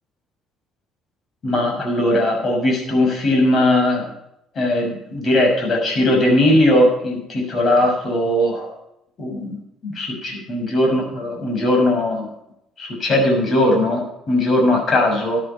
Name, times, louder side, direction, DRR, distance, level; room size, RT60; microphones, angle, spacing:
voice 1, 1.4-4.1 4.5-8.7 9.2-9.6 9.8-12.3 12.8-15.4, left 1 dB, 40° left, 2 dB, 6.4 m, -19 dB
13.0 x 10.5 x 5.6 m, 0.81 s
cardioid pair, 120°, 0 cm